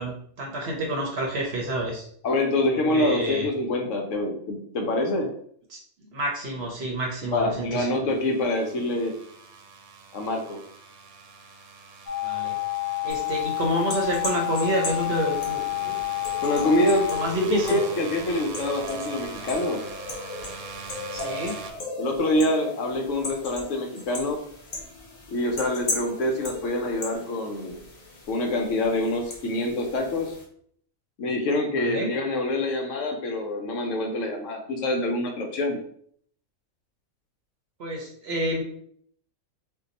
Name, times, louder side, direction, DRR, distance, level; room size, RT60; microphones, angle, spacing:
voice 1, 0.0-2.1 2.7-3.5 5.7-5.8 6.1-8.1 12.2-12.5 13.0-16.0 17.1-17.8 21.1-21.5 31.8-32.1 37.8-38.6, right 1 dB, 60° right, 0 dB, 0.8 m, -29 dB
voice 2, 2.2-5.3 7.3-9.1 10.1-10.6 16.4-17.1 17.4-19.8 22.0-24.4 25.3-27.8 28.3-30.3 31.2-35.8, left 1 dB, 70° left, 2 dB, 0.9 m, -25 dB
sound 1, 8.1-21.7, right 4 dB, 85° right, 1.0 m, -42 dB
sound 2, 12.1-17.3, left 20 dB, 25° left, 0.8 m, -29 dB
sound 3, 13.1-30.4, left 2 dB, 50° left, 0.5 m, -37 dB
2.7 x 2.2 x 3.8 m, 0.63 s
omnidirectional pair, 1.5 m